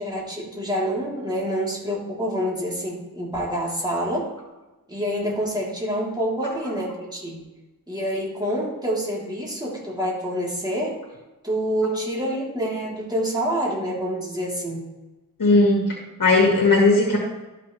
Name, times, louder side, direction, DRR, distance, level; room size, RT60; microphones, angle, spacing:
voice 1, 0.0-4.3 4.9-7.4 7.9-11.0 11.4-14.8, equal, 10° right, -5 dB, 3.5 m, -27 dB
voice 2, 15.4-17.2, left 2 dB, 75° left, -1 dB, 2.1 m, -18 dB
13.0 x 6.5 x 3.3 m, 1.1 s
wide cardioid pair, 75°, 33 cm